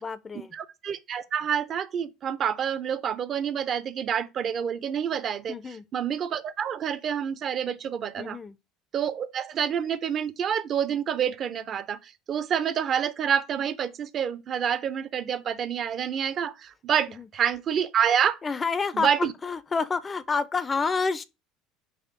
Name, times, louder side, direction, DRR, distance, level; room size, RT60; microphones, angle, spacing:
voice 1, 0.0-0.5 5.5-5.8 8.2-8.6 17.2-17.3 18.4-19.1 19.4-21.2, left 4 dB, 25° left, 0.4 m, -28 dB
voice 2, 0.5-8.4 8.9-18.4 18.9-19.3, right 8 dB, 40° right, 0.4 m, -28 dB
4.2 x 2.5 x 4.4 m
figure-of-eight pair, 65°, 0 cm